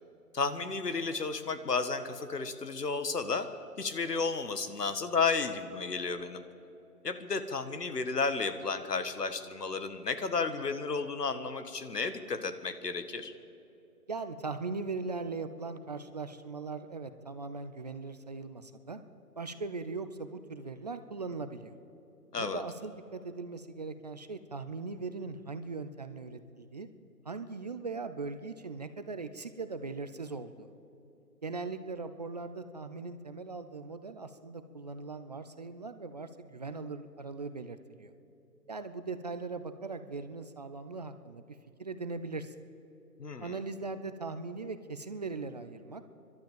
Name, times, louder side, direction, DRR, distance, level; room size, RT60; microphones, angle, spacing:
voice 1, 0.3-3.5 3.8-6.4 7.0-13.3 22.3-22.6 43.2-43.5, left 4 dB, 85° left, 10 dB, 1.7 m, -32 dB
voice 2, 14.1-19.0 19.4-21.7 22.4-26.9 27.2-30.7 31.4-38.1 38.7-42.5 43.4-46.0, right 4 dB, 25° right, 10 dB, 0.5 m, -40 dB
29.5 x 12.0 x 7.2 m, 2.9 s
figure-of-eight pair, 140°, 47 cm